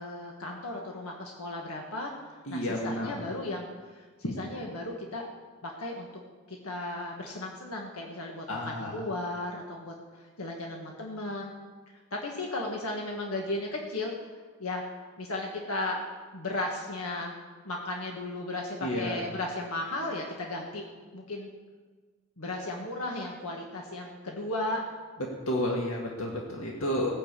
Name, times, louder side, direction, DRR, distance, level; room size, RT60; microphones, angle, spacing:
voice 1, 0.0-2.1 2.5-5.3 5.6-6.1 6.5-11.5 12.1-14.1 14.6-14.8 15.2-16.0 16.3-17.3 17.6-20.8 21.1-21.5 22.4-24.8, left 2 dB, 90° left, 0 dB, 1.6 m, -35 dB
voice 2, 2.5-3.1 8.5-9.0 18.8-19.2 25.5-27.2, equal, 75° left, -1 dB, 2.0 m, -31 dB
17.0 x 7.1 x 8.3 m, 1.4 s
head